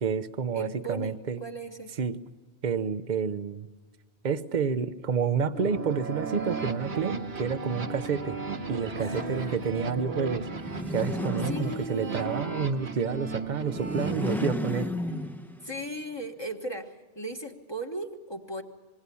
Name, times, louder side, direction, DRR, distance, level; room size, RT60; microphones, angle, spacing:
voice 1, 0.0-1.4 2.0-2.2 2.6-3.7 4.2-8.4 8.7-10.5 10.9-14.9, right 6 dB, 45° right, 12 dB, 1.0 m, -29 dB
voice 2, 0.5-1.9 9.0-10.4 11.4-12.3 15.6-18.6, right 1 dB, 25° left, 2 dB, 1.6 m, -38 dB
sound 1, 5.5-14.3, right 4 dB, 70° right, 1.9 m, -35 dB
sound 2, 10.5-12.3 13.6-15.8, left 1 dB, ahead, 0.9 m, -33 dB
26.5 x 21.0 x 7.0 m, 1.4 s
omnidirectional pair, 1.1 m